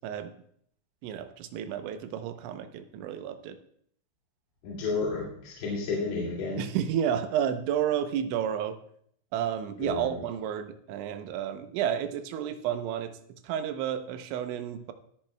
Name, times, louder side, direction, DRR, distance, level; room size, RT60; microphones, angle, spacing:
voice 1, 1.0-3.6 6.6-8.8 9.3-13.2 13.4-14.9, right 9 dB, 85° right, 8 dB, 3.2 m, -31 dB
voice 2, 4.6-6.6 9.8-10.0, left 4 dB, 60° left, -6 dB, 3.9 m, -31 dB
19.0 x 10.5 x 2.2 m, 0.66 s
omnidirectional pair, 5.3 m